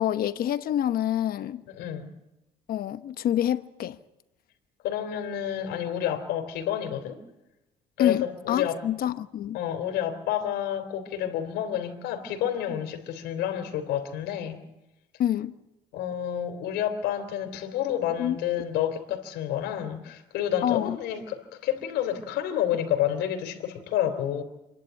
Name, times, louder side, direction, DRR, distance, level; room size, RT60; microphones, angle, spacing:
voice 1, 0.0-1.6 2.7-4.0 8.0-9.6 15.2-15.5 18.2-18.4 20.6-21.0, left 11 dB, 60° left, 1.1 m, -27 dB
voice 2, 1.8-2.1 4.8-7.2 8.0-8.7 9.5-14.6 15.9-24.4, left 10 dB, 85° left, 3.3 m, -29 dB
27.5 x 11.0 x 9.4 m
cardioid pair, 110°, 17 cm